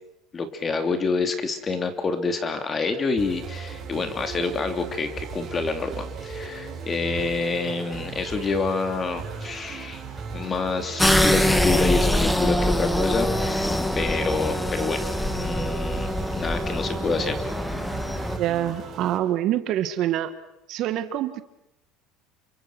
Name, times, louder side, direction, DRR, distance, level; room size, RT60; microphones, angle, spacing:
voice 1, 0.3-17.4, left 4 dB, 25° left, 8 dB, 3.0 m, -28 dB
sound 1, 3.2-19.2, right 5 dB, 30° right, 7.5 m, -37 dB
sound 2, 11.0-18.4, left 1 dB, 5° left, 1.7 m, -24 dB
voice 2, 18.4-20.3 20.7-21.4, right 12 dB, 55° right, 10 dB, 1.9 m, -25 dB
29.0 x 24.5 x 6.2 m, 0.84 s
cardioid pair, 130°, 0 cm